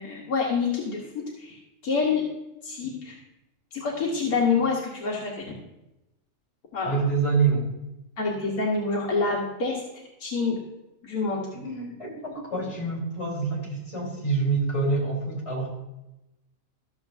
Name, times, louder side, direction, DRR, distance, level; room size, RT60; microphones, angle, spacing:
voice 1, 0.0-1.6 1.8-2.2 2.6-3.1 3.7-5.5 6.7-7.0 8.2-9.8 10.2-10.6 11.0-11.5, left 4 dB, 85° left, -3 dB, 1.7 m, -27 dB
voice 2, 6.8-7.7 11.5-15.7, right 4 dB, 50° left, -3 dB, 3.6 m, -26 dB
13.5 x 7.1 x 2.6 m, 0.93 s
omnidirectional pair, 1.5 m